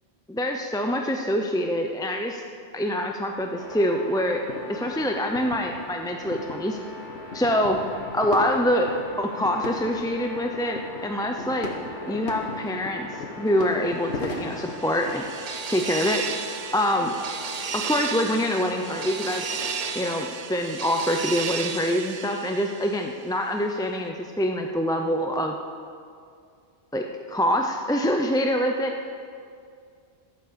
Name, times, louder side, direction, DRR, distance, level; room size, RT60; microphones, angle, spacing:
voice 1, 0.3-2.4 2.7-6.8 7.3-7.8 8.1-8.9 9.2-11.7 12.1-13.1 13.4-15.2 15.7-16.3 16.7-17.1 17.7-19.4 19.9-25.6 26.9-28.9, equal, 5° left, 3 dB, 0.4 m, -25 dB
sound 1, 3.6-20.3, left 2 dB, 40° left, 2.6 m, -41 dB
sound 2, 4.0-15.4, left 2 dB, 80° left, 1.4 m, -39 dB
sound 3, 14.2-23.3, right 6 dB, 45° right, 0.6 m, -34 dB
13.0 x 8.5 x 6.9 m, 2.3 s
omnidirectional pair, 1.1 m